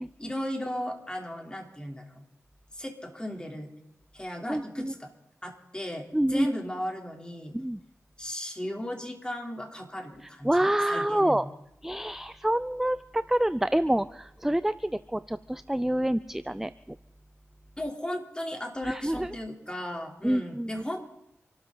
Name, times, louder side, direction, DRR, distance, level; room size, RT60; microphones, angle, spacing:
voice 1, 0.2-2.2 2.7-3.7 4.1-5.1 5.4-7.6 8.2-11.5 17.8-21.1, equal, 15° left, 2 dB, 3.5 m, -36 dB
voice 2, 4.5-4.9 6.1-6.5 7.5-7.8 10.4-11.5 11.8-16.7 18.9-19.3 20.2-20.7, right 1 dB, 5° right, 15 dB, 0.5 m, -27 dB
27.0 x 13.0 x 4.0 m, 0.84 s
cardioid pair, 55°, 5 cm